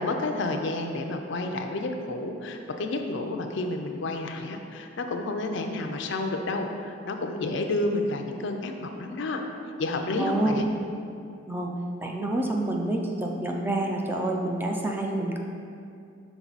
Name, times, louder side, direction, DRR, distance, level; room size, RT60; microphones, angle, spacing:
voice 1, 0.0-9.4 9.8-10.6, left 2 dB, 65° left, 4 dB, 0.5 m, -30 dB
voice 2, 10.2-10.6 11.5-11.7 12.0-15.4, right 2 dB, 10° right, 0 dB, 0.4 m, -28 dB
5.9 x 4.0 x 4.0 m, 2.5 s
head